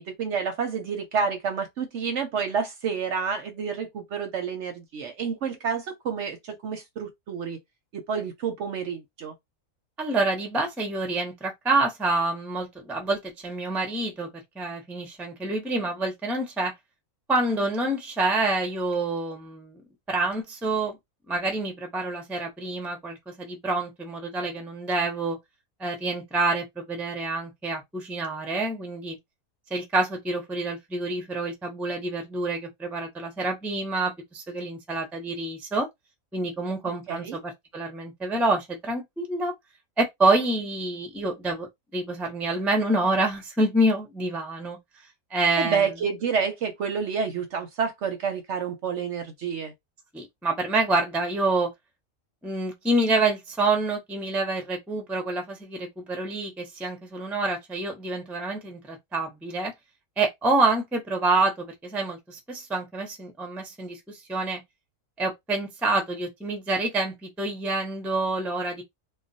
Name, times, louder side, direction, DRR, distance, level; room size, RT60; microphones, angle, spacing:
voice 1, 0.0-7.6 7.9-9.3 37.1-37.4 45.6-49.7, right 6 dB, 65° right, 0.8 m, -29 dB
voice 2, 10.0-14.3 14.5-16.7 17.3-19.8 20.1-21.0 21.3-25.4 25.8-29.2 29.7-35.9 36.3-39.5 40.0-44.8 45.3-45.9 50.1-51.7 52.4-59.7 60.2-64.6 65.2-68.8, right 2 dB, ahead, 0.4 m, -27 dB
2.4 x 2.2 x 3.9 m
omnidirectional pair, 1.5 m